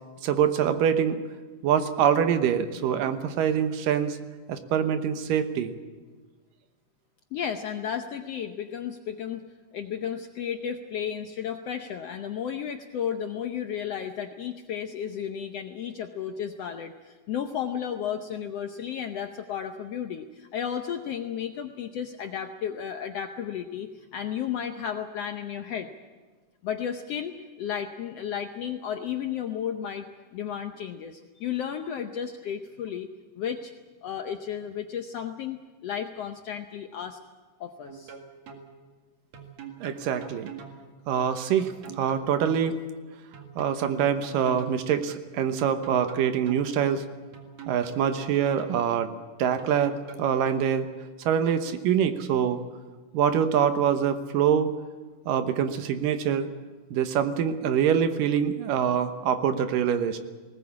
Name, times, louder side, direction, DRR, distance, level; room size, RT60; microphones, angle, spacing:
voice 1, 0.2-1.2 1.6-4.2 4.5-5.7 39.8-40.5 41.1-42.8 43.6-47.0 47.7-49.1 49.4-50.9 51.2-52.6 53.1-54.7 55.3-56.5 56.9-60.2, right 8 dB, 85° right, 9 dB, 2.8 m, -25 dB
voice 2, 7.3-9.5 9.7-25.9 26.6-33.1 33.4-33.7 34.0-37.2 37.6-38.1, left 8 dB, 75° left, 6 dB, 1.5 m, -33 dB
sound 1, 37.9-38.7 39.3-40.8 41.6-42.7 43.3-44.8 45.6-46.7 47.3-48.8 49.6-50.6, right 6 dB, 55° right, 3.0 m, -43 dB
20.0 x 19.0 x 8.6 m, 1.4 s
omnidirectional pair, 3.8 m